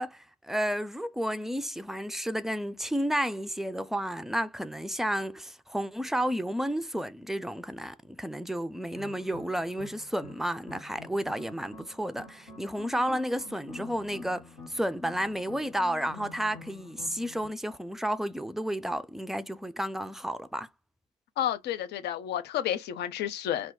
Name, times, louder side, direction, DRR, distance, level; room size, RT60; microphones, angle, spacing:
voice 1, 0.0-20.7, equal, ahead, 0.3 m, -32 dB
Polymer haze, 8.9-17.5, left 2 dB, 85° left, 0.8 m, -47 dB
voice 2, 21.4-23.7, left 11 dB, 55° left, 0.5 m, -31 dB
2.4 x 2.1 x 3.5 m
figure-of-eight pair, 40°, 21 cm